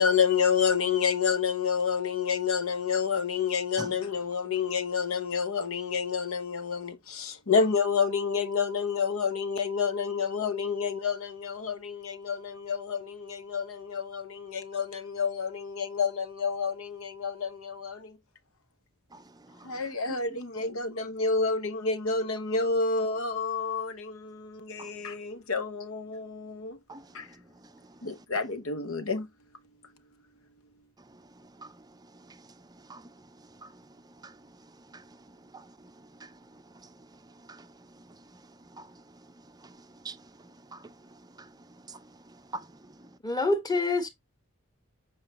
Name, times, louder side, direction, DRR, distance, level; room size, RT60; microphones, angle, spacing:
voice 1, 0.0-18.2 19.6-26.8 27.1-27.3 28.0-29.3, left 5 dB, 70° left, 0.9 m, -29 dB
voice 2, 38.7-39.0 39.6-40.2 40.7-40.9 41.4-41.5 41.9-42.7 43.0-43.1, right 3 dB, 20° right, 0.5 m, -45 dB
voice 3, 43.2-44.1, left 2 dB, 20° left, 1.3 m, -26 dB
7.8 x 4.8 x 3.0 m
head